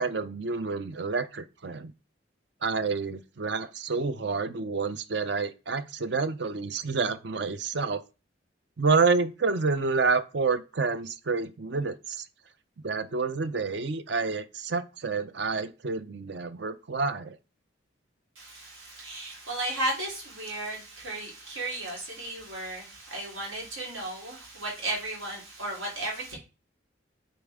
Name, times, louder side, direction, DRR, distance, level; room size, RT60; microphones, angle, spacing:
voice 1, 0.0-1.9 2.6-8.0 8.8-12.3 12.8-17.4, right 4 dB, 55° right, 0.6 m, -28 dB
voice 2, 18.3-26.4, right 1 dB, 80° right, 3.2 m, -34 dB
8.7 x 4.3 x 3.5 m
head